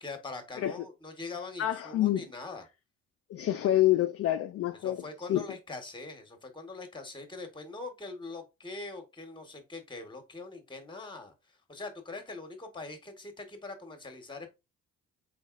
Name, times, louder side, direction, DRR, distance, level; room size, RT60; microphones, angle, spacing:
voice 1, 0.0-2.6 4.8-14.5, left 3 dB, 15° left, 1.2 m, -43 dB
voice 2, 1.6-2.2 3.3-5.0 5.3-5.4, left 13 dB, 50° left, 0.4 m, -27 dB
4.0 x 3.8 x 2.5 m
cardioid pair, 80°, 32 cm